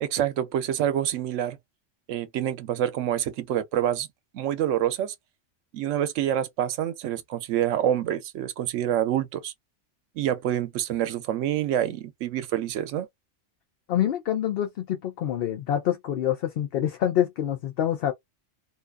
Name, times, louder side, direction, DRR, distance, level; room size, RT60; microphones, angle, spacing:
voice 1, 0.0-1.6 2.1-4.1 4.3-5.1 5.7-9.5 10.2-13.1, right 11 dB, 90° right, 0.9 m, -27 dB
voice 2, 13.9-18.1, left 10 dB, 65° left, 0.7 m, -26 dB
2.6 x 2.3 x 2.2 m
omnidirectional pair, 1.2 m